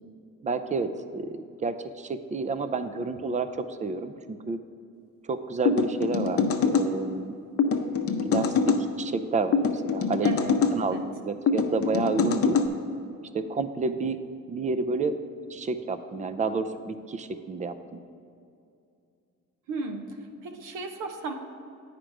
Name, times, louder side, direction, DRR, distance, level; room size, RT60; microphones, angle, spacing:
voice 1, 0.4-4.6 5.2-7.3 8.2-10.3 10.7-11.0 11.2-12.6 13.3-14.2 14.5-15.2 15.5-18.0, right 4 dB, 25° right, 11 dB, 0.4 m, -30 dB
sound 1, 5.6-6.9 7.6-8.8 9.5-10.8 11.5-12.7, left 5 dB, 50° left, 0.7 m, -24 dB
voice 2, 10.2-11.0 19.7-21.3, right 3 dB, 90° right, 6 dB, 0.8 m, -35 dB
8.8 x 5.1 x 4.7 m, 2.6 s
cardioid pair, 90°, 30 cm